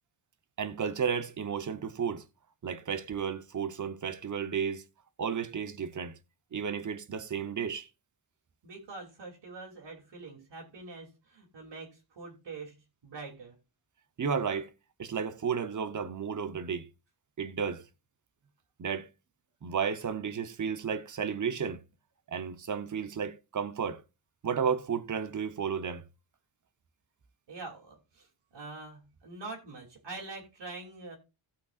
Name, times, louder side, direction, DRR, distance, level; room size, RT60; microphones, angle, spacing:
voice 1, 0.6-2.2 2.6-4.8 5.2-6.2 6.5-7.9 14.2-14.7 15.0-16.8 17.4-17.8 18.8-19.1 19.6-21.8 22.3-24.0 24.4-26.0, right 6 dB, 40° right, 0.9 m, -33 dB
voice 2, 8.6-13.6 27.5-28.3 28.5-31.1, right 3 dB, 60° right, 2.9 m, -44 dB
17.0 x 5.8 x 2.4 m
wide cardioid pair, 160°, 49 cm